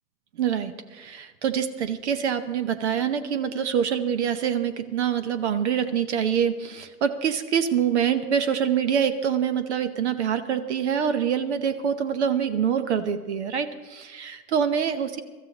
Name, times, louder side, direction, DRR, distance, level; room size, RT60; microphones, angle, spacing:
voice 1, 0.4-15.2, right 8 dB, 45° right, 11 dB, 0.9 m, -25 dB
24.0 x 13.5 x 2.9 m, 1.3 s
hypercardioid pair, 150°, 49 cm